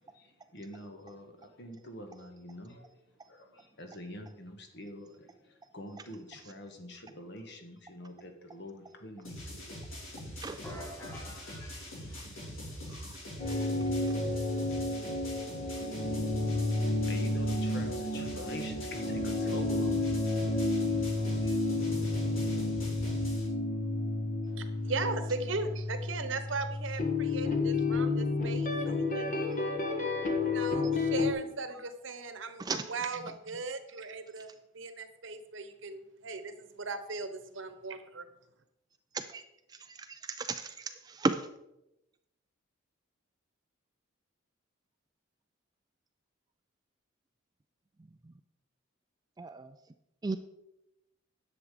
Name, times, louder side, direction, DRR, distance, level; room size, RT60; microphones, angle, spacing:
voice 1, 0.5-2.9 3.3-10.0 10.3-10.7 17.0-20.7 21.4-21.6, left 1 dB, 55° left, 5 dB, 1.6 m, -46 dB
sound 1, 9.2-23.5, equal, 80° left, 3.8 m, -43 dB
sound 2, 10.6-12.7, left 1 dB, 15° left, 4.7 m, -47 dB
sound 3, 13.4-31.3, left 2 dB, 40° left, 1.5 m, -31 dB
voice 2, 24.5-29.3 30.4-34.5 34.7-38.3, right 3 dB, 65° right, 9 dB, 1.0 m, -38 dB
voice 3, 40.4-40.7 41.2-41.4 49.4-49.7 50.2-50.4, right 3 dB, 20° right, 9 dB, 0.3 m, -31 dB
10.5 x 7.3 x 4.9 m, 0.89 s
head